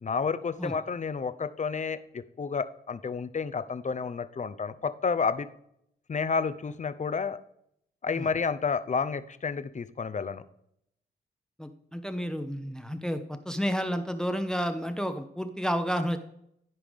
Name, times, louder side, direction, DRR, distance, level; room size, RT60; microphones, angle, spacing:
voice 1, 0.0-5.5 6.1-7.4 8.0-10.4, left 5 dB, 35° left, 13 dB, 0.6 m, -30 dB
voice 2, 11.6-16.2, equal, 5° left, 8 dB, 0.8 m, -31 dB
13.0 x 4.9 x 3.6 m, 0.75 s
supercardioid pair, 45°, 21 cm